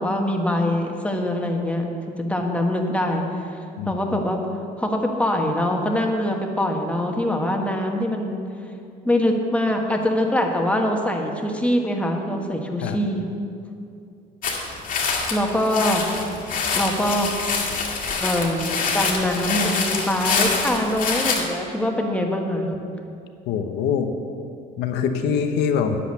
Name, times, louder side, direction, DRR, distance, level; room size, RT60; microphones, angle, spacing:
voice 1, 0.0-3.6 3.9-4.4 4.8-8.4 9.0-13.2 15.3-16.0 16.7-17.3 18.2-22.7, left 1 dB, 5° left, 2 dB, 1.3 m, -23 dB
voice 2, 3.8-4.2 12.8-13.0 23.5-24.1 24.8-26.0, left 7 dB, 85° left, 6 dB, 0.9 m, -24 dB
sound 1, 14.4-21.4, left 5 dB, 55° left, 2.0 m, -25 dB
10.0 x 8.6 x 6.8 m, 2.5 s
cardioid pair, 110°, 17 cm